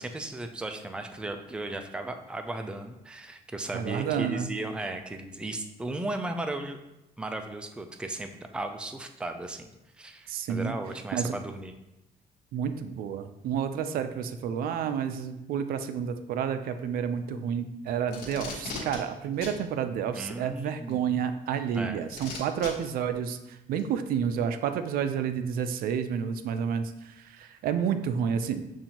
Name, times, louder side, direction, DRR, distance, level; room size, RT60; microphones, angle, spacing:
voice 1, 0.0-6.8 7.2-9.7 10.0-11.8 20.1-21.0 21.7-22.0, right 2 dB, 5° right, 6 dB, 0.3 m, -36 dB
voice 2, 3.7-4.5 10.3-10.7 11.1-11.3 12.5-28.6, right 8 dB, 70° right, 10 dB, 0.4 m, -30 dB
Packing tape duct tape, 18.1-19.0 19.4-19.6 20.9-21.0 22.1-22.7 23.8-23.9, left 4 dB, 85° left, 1.1 m, -37 dB
7.1 x 2.6 x 2.9 m, 0.92 s
cardioid pair, 115°, 16 cm